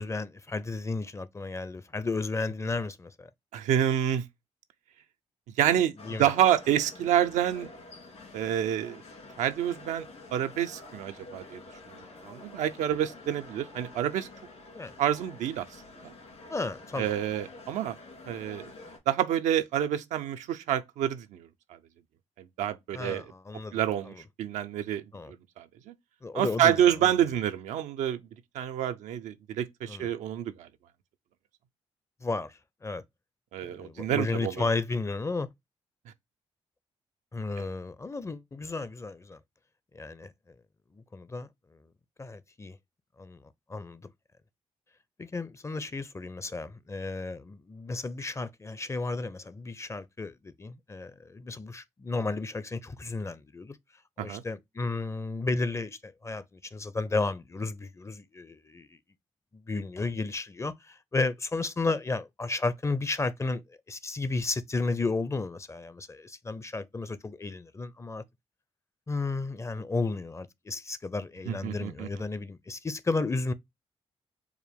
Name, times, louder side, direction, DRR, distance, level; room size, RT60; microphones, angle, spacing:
voice 1, 0.0-3.3 6.0-6.3 14.7-14.9 16.5-17.1 22.9-23.8 24.1-24.2 25.1-25.3 26.2-27.1 29.9-30.1 32.2-33.0 33.6-35.5 37.3-39.4 39.9-40.3 40.9-41.5 42.2-42.8 43.2-43.4 43.7-44.1 45.2-53.8 54.2-59.0 59.5-68.2 69.1-73.5, left 3 dB, 25° left, 0.5 m, -33 dB
voice 2, 3.5-4.3 5.6-5.9 6.2-7.7 8.3-9.0 9.4-10.1 10.3-11.6 11.9-12.0 12.2-14.3 15.0-15.7 16.0-16.1 17.0-18.0 18.3-18.7 19.1-21.8 22.4-23.3 23.7-24.1 24.4-25.0 25.6-25.9 26.3-28.2 28.5-30.7 33.5-34.6 37.6-37.7 54.2-54.4 71.5-72.1, right 10 dB, 90° right, 0.4 m, -28 dB
sound 1, 6.0-19.0, left 2 dB, 65° left, 2.1 m, -48 dB
4.7 x 2.1 x 3.4 m
cardioid pair, 60°, 12 cm